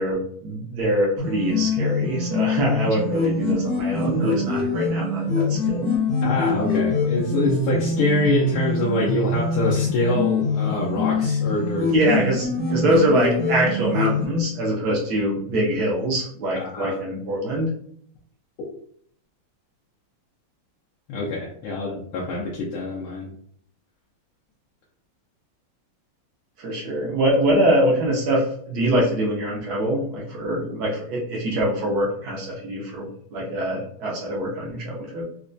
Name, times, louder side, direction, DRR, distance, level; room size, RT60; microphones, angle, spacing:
voice 1, 0.0-5.9 11.9-17.7 21.8-21.9 26.6-35.2, right 1 dB, 65° right, -3 dB, 1.0 m, -24 dB
sound 1, 1.2-14.3, left 3 dB, 55° left, 1.2 m, -24 dB
voice 2, 6.2-11.9 16.5-17.0 21.1-23.3, left 2 dB, 75° left, -4 dB, 1.5 m, -25 dB
4.2 x 2.2 x 2.5 m, 0.62 s
omnidirectional pair, 2.4 m